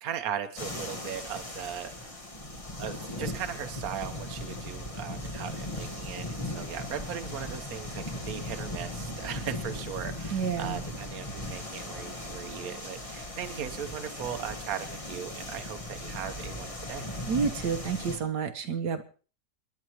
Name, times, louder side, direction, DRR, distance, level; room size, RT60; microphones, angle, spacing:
voice 1, 0.0-2.2 2.8-17.0, right 9 dB, 60° right, 8 dB, 1.4 m, -38 dB
sound 1, 0.6-18.2, left 1 dB, 20° left, 1.4 m, -38 dB
voice 2, 10.3-10.8 17.3-19.0, right 6 dB, 80° right, 6 dB, 1.7 m, -29 dB
28.0 x 10.5 x 3.0 m, 0.37 s
omnidirectional pair, 1.8 m